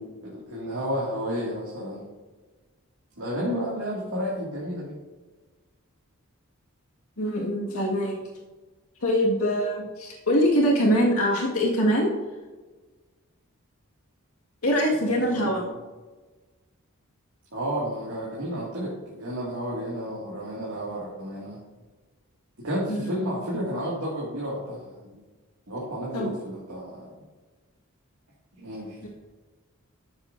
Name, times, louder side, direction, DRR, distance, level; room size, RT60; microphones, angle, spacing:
voice 1, 0.0-2.1 3.2-5.0 15.0-15.8 17.5-21.6 22.6-25.2 25.7-27.1 28.6-29.0, equal, 70° right, -6 dB, 2.2 m, -32 dB
voice 2, 7.2-8.1 9.0-12.1 14.6-15.6 22.9-23.1 26.1-26.3, equal, 90° left, -2 dB, 1.8 m, -23 dB
12.5 x 7.3 x 2.6 m, 1.3 s
head